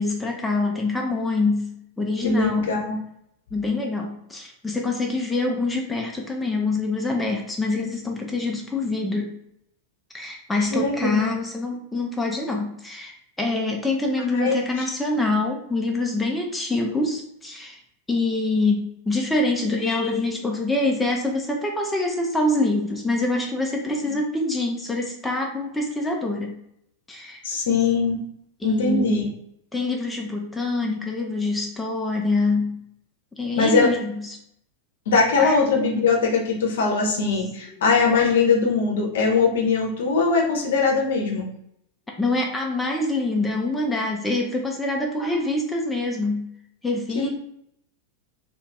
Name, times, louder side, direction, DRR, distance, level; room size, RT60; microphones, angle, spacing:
voice 1, 0.0-1.7 2.0-2.7 3.5-9.3 10.1-17.8 18.1-26.6 27.1-27.4 28.6-29.2 29.7-32.8 33.4-34.4 35.4-35.6 37.2-37.3 42.2-46.5 46.8-47.3, left 2 dB, 10° left, 0 dB, 0.4 m, -25 dB
voice 2, 2.2-3.0 10.7-11.3 14.3-14.5 27.4-28.2 28.6-29.3 33.6-33.9 35.1-41.5 47.1-47.3, left 4 dB, 60° left, 0 dB, 0.6 m, -21 dB
2.4 x 2.3 x 3.1 m, 0.75 s
figure-of-eight pair, 90°, 0 cm